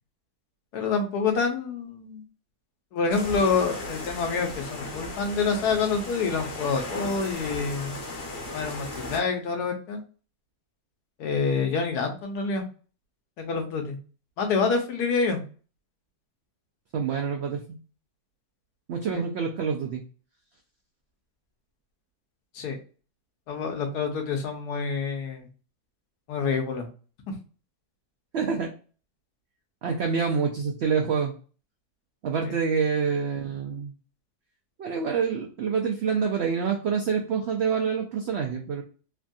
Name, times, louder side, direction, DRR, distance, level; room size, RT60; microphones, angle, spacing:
voice 1, 0.7-2.2 2.9-8.0 8.5-10.0 11.2-12.6 13.4-14.0 14.4-15.4 19.1-19.2 22.5-22.8 23.5-25.5 26.3-26.9 27.3-27.4 32.4-32.5, left 5 dB, 85° left, 4 dB, 1.3 m, -27 dB
sound 1, 3.1-9.2, left 2 dB, 60° left, 1.3 m, -36 dB
voice 2, 16.9-17.8 18.9-20.0 28.3-28.7 29.8-31.3 32.2-33.9 34.8-38.8, right 6 dB, 80° right, 2 dB, 0.5 m, -27 dB
3.3 x 2.6 x 2.2 m, 0.38 s
omnidirectional pair, 1.6 m